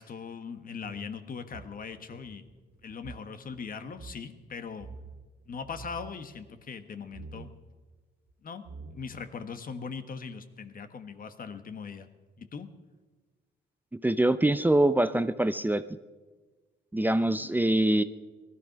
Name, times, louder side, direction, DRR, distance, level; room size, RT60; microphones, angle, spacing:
voice 1, 0.0-2.5 2.8-4.9 5.5-7.5 8.4-8.6 8.9-12.1 12.4-12.7, left 5 dB, 45° left, 9 dB, 1.3 m, -40 dB
sound 1, 0.8-3.3 3.5-3.6 3.9-4.2 4.8-5.3 5.6-6.2 7.1-7.5 8.3-8.4 8.6-9.3, right 4 dB, 75° right, 2.0 m, -46 dB
voice 2, 13.9-15.8 16.9-18.0, right 1 dB, 10° right, 12 dB, 0.6 m, -24 dB
18.0 x 13.0 x 5.9 m, 1.3 s
cardioid pair, 90°, 20 cm